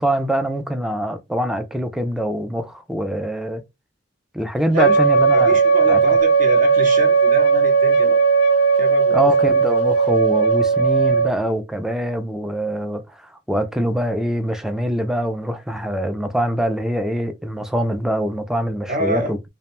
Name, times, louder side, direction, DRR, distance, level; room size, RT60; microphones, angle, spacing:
voice 1, 0.0-3.6 4.3-5.6 5.9-6.0 9.1-19.4, equal, 5° right, 0.3 m, -24 dB
Wind instrument woodwind instrument, 4.8-11.3, right 5 dB, 65° left, 0.4 m, -16 dB
voice 2, 5.3-8.2 8.8-9.3 10.0-10.2 18.9-19.3, right 1 dB, 45° right, 0.6 m, -27 dB
2.5 x 2.1 x 2.9 m
head